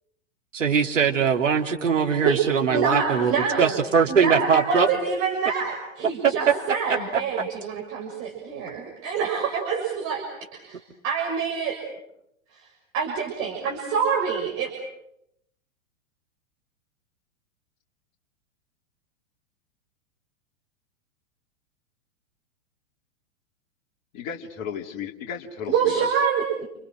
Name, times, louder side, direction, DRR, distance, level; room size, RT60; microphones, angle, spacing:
voice 1, 0.5-3.3 3.6-4.9 6.2-6.3, right 6 dB, 70° right, 4 dB, 3.2 m, -21 dB
voice 2, 2.7-3.7 4.1-10.2 10.5-11.8 12.5-12.7 12.9-14.7 25.7-26.7, right 6 dB, 35° right, 0 dB, 6.5 m, -26 dB
voice 3, 24.1-26.1, left 7 dB, 40° left, 3 dB, 3.2 m, -34 dB
30.0 x 29.5 x 6.4 m, 0.80 s
figure-of-eight pair, 100°, 39 cm